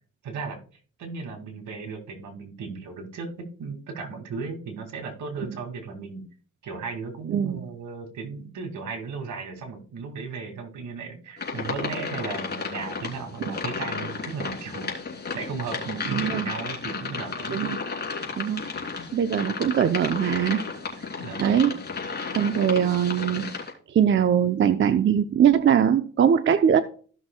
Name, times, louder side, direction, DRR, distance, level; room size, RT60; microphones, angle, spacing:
voice 1, 0.2-0.6 1.0-6.2 6.6-14.9 15.3-17.6 21.2-21.7, right 5 dB, 75° right, 4 dB, 2.2 m, -35 dB
voice 2, 7.3-7.6 13.4-13.6 16.1-16.5 17.5-17.8 18.4-18.6 19.1-20.6 21.4-21.7 22.3-23.4 23.9-26.8, right 8 dB, 40° right, 10 dB, 0.6 m, -21 dB
sound 1, 11.4-23.7, left 4 dB, 35° left, 2.7 m, -33 dB
15.0 x 6.0 x 2.2 m, 0.42 s
cardioid pair, 90°, 30 cm